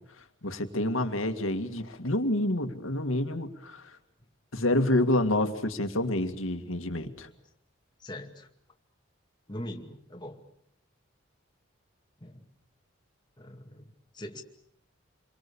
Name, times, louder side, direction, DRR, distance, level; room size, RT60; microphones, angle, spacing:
voice 1, 0.4-3.8 4.5-7.3, left 1 dB, 80° left, 7 dB, 2.2 m, -28 dB
voice 2, 8.0-8.5 9.5-10.4 12.2-12.4 13.4-13.8 14.1-14.4, left 1 dB, 20° left, 3 dB, 2.2 m, -41 dB
28.5 x 23.0 x 7.0 m, 0.69 s
head